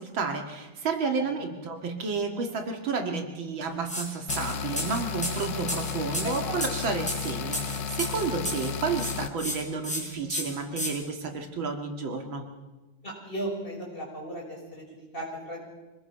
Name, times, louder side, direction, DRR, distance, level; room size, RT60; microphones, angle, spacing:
voice 1, 0.0-12.5, right 4 dB, 85° right, 4 dB, 2.9 m, -31 dB
sound 1, 3.9-4.0 4.3-8.7 9.0-9.6 9.8-10.0 10.3-10.9, equal, 5° left, 4.8 m, -32 dB
sound 2, 4.3-9.3, left 6 dB, 70° left, 1.5 m, -33 dB
voice 2, 6.2-6.6 13.0-14.4 14.7-14.8 15.1-15.6, right 1 dB, 25° left, -2 dB, 6.1 m, -35 dB
25.5 x 19.5 x 5.9 m, 1.1 s
omnidirectional pair, 2.1 m